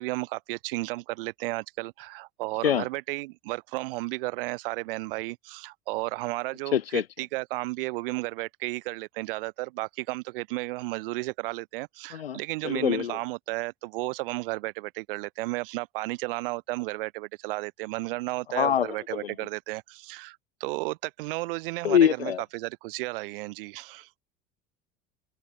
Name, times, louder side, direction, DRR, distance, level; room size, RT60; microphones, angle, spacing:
voice 1, 0.0-24.1, right 22 dB, 65° right, 2.7 m, -33 dB
voice 2, 6.7-7.0 12.1-12.4 12.6-13.2 18.5-19.3 21.8-22.4, left 9 dB, 85° left, 1.2 m, -24 dB
hypercardioid pair, 75°, 29 cm